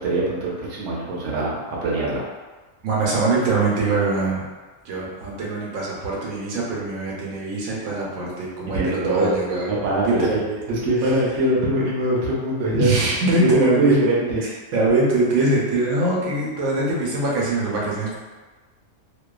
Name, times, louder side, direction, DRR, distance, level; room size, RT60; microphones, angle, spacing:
voice 1, 0.0-2.2 8.7-9.4 9.7-10.3 10.7-12.9 13.3-14.6, right 1 dB, 65° right, -4 dB, 0.8 m, -22 dB
voice 2, 2.8-4.5 4.8-9.7 10.0-10.6 11.0-11.1 12.7-14.0 14.7-18.2, right 2 dB, 85° right, -5 dB, 1.1 m, -23 dB
2.6 x 2.2 x 2.3 m, 1.3 s
omnidirectional pair, 1.4 m